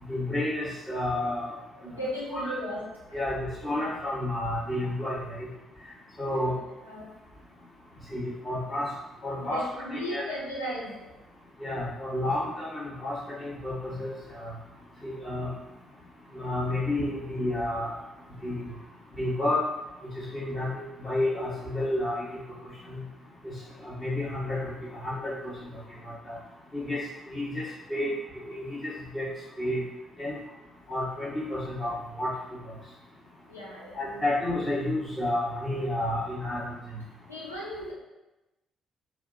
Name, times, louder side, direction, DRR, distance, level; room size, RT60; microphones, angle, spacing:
voice 1, 0.1-1.5 2.3-2.5 3.1-5.5 6.2-6.6 8.1-8.9 9.2-9.6 9.9-10.2 11.6-14.5 15.0-15.5 16.3-17.9 18.4-18.6 19.1-19.6 20.1-22.4 22.9-23.0 23.4-23.5 23.8-24.7 25.0-25.5 26.0-26.4 26.7-27.0 27.3-28.1 28.4-29.3 29.6-29.8 30.2-30.4 30.9-32.3 33.9-36.6, left 1 dB, 35° left, -8 dB, 1.3 m, -30 dB
voice 2, 1.7-2.8 6.8-7.1 9.4-10.9 33.5-34.3 37.3-37.9, equal, 85° left, -7 dB, 0.5 m, -36 dB
2.6 x 2.1 x 2.6 m, 1.0 s
figure-of-eight pair, 45°, 0 cm